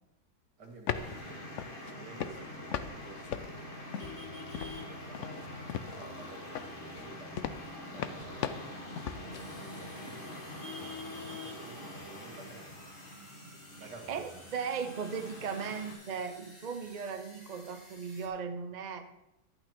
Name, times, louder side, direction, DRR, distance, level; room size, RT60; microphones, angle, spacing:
sound 1, 0.6-1.2 1.6-1.9 2.2-2.9 3.2-4.3 4.5-4.8 5.1-6.2 6.5-9.4, left 9 dB, 65° left, 0.8 m, -37 dB
voice 1, 0.6-1.3 2.0-3.2 3.9-7.6 7.9-12.8 13.8-14.4, right 2 dB, 80° right, 2 dB, 2.5 m, -52 dB
Traffic noise roadway noise, 0.9-15.9, left 1 dB, 35° left, 1.7 m, -45 dB
sound 2, 9.3-18.3, equal, 20° left, 2.1 m, -55 dB
voice 2, 13.8-19.1, right 6 dB, 40° right, 7 dB, 0.6 m, -37 dB
11.5 x 8.8 x 4.4 m, 0.90 s
omnidirectional pair, 1.7 m